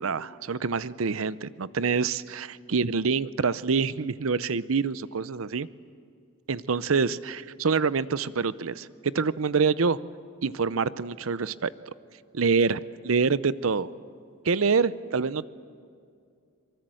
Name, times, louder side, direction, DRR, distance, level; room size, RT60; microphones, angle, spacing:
voice 1, 0.0-5.7 6.5-10.0 10.4-11.7 12.3-13.9 14.4-15.5, right 5 dB, 85° right, 16 dB, 0.7 m, -26 dB
24.5 x 23.5 x 7.7 m, 2.3 s
head